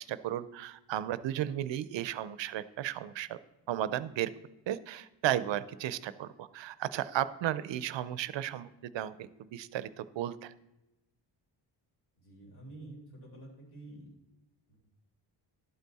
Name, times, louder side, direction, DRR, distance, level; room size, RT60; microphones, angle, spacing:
voice 1, 0.0-3.4 3.7-4.3 4.7-10.5, right 12 dB, 75° right, 15 dB, 0.6 m, -34 dB
voice 2, 12.2-14.1 14.7-14.8, right 2 dB, 55° left, -1 dB, 3.8 m, -49 dB
12.0 x 8.2 x 4.1 m, 0.95 s
wide cardioid pair, 160°, 45 cm